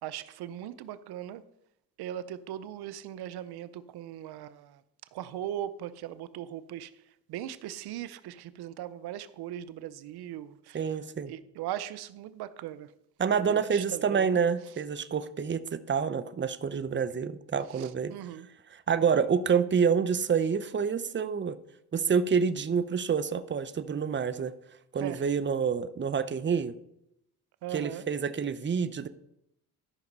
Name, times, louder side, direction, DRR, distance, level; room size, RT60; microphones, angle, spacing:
voice 1, 0.0-1.4 2.0-4.8 5.1-7.0 7.3-11.0 11.3-12.9 13.4-14.4 17.7-18.5 25.0-25.2 27.6-28.0, right 11 dB, 85° right, 0.6 m, -39 dB
voice 2, 10.7-11.3 13.2-18.1 18.7-21.6 21.9-24.5 24.9-26.7 27.7-29.1, right 6 dB, 30° right, 0.7 m, -28 dB
13.0 x 5.8 x 5.4 m
cardioid pair, 80°, 38 cm